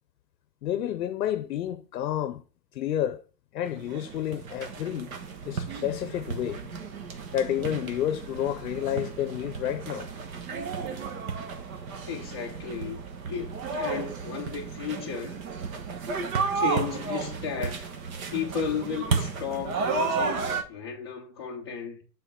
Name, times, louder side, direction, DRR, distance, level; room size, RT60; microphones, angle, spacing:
voice 1, 0.6-2.4 2.7-3.2 3.5-5.1 5.4-6.7 7.3-10.1, left 11 dB, 60° left, 0.7 m, -30 dB
sound 1, 3.7-20.6, right 5 dB, 55° right, 1.2 m, -33 dB
voice 2, 12.1-15.4 16.5-17.9 18.3-22.0, left 6 dB, 15° left, 0.4 m, -34 dB
8.0 x 4.0 x 4.2 m
hypercardioid pair, 170°, 49 cm